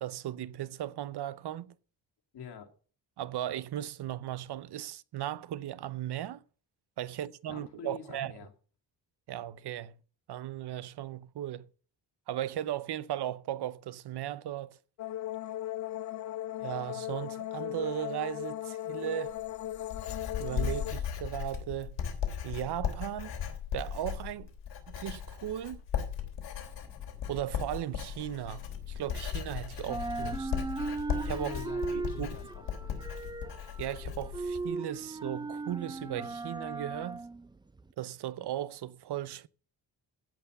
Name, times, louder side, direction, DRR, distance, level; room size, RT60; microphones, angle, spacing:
voice 1, 0.0-1.7 3.2-6.4 7.0-8.3 9.3-9.9 10.3-11.7 12.3-14.8 16.6-19.4 20.4-22.0 22.4-23.3 23.7-24.5 24.9-25.8 27.3-30.5 31.2-31.5 31.9-32.4 33.8-37.2 38.0-39.5, right 12 dB, 70° right, 0.8 m, -37 dB
voice 2, 2.3-2.7 7.5-8.5 31.3-33.4, left 6 dB, 70° left, 2.6 m, -46 dB
sound 1, 15.0-20.9, left 13 dB, 45° left, 0.4 m, -37 dB
Writing, 19.3-34.6, left 8 dB, 85° left, 3.4 m, -37 dB
sound 2, 26.6-29.5 29.8-37.9, right 3 dB, 10° right, 0.5 m, -38 dB
16.0 x 5.8 x 6.7 m
wide cardioid pair, 140°, 41 cm